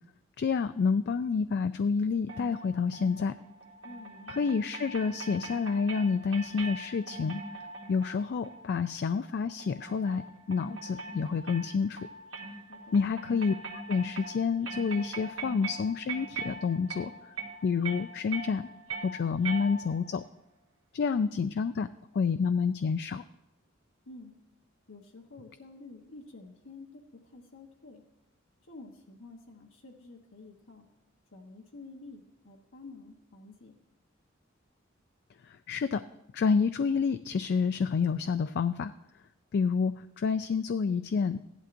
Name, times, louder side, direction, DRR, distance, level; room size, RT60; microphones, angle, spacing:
voice 1, 0.4-3.3 4.3-7.4 7.9-10.2 10.5-12.0 12.9-17.4 17.6-18.7 19.0-20.2 20.9-21.9 22.1-23.2 35.4-36.0 36.3-38.9 39.5-41.4, left 5 dB, 55° left, 11 dB, 0.3 m, -29 dB
sound 1, 2.3-20.1, right 3 dB, 70° right, 1.7 m, -42 dB
voice 2, 3.8-4.6 12.7-13.0 24.1-24.3 24.9-28.0 28.7-30.8 31.3-33.7, left 3 dB, 80° left, 1 dB, 1.1 m, -50 dB
15.5 x 11.0 x 2.6 m, 0.92 s
head